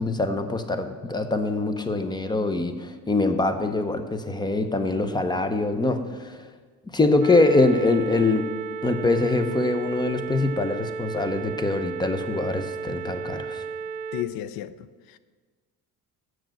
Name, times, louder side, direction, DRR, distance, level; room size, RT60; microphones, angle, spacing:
voice 1, 0.0-6.4 6.9-8.5 8.8-13.6, left 2 dB, 10° left, 0.6 m, -24 dB
sound 1, 7.2-14.2, right 6 dB, 60° right, 0.5 m, -34 dB
voice 2, 14.1-15.2, left 12 dB, 80° left, 0.5 m, -34 dB
7.2 x 6.2 x 7.6 m
cardioid pair, 135°, 35 cm